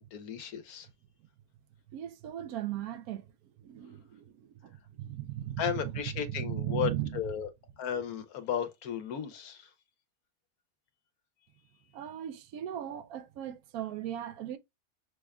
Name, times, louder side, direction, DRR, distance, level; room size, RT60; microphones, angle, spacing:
voice 1, 0.1-0.9 5.6-7.5 7.8-9.7, left 9 dB, 85° left, 1.2 m, -34 dB
voice 2, 1.9-3.3 3.6-7.3 11.9-14.6, right 12 dB, 85° right, 1.1 m, -37 dB
6.0 x 2.2 x 3.5 m
omnidirectional pair, 1.5 m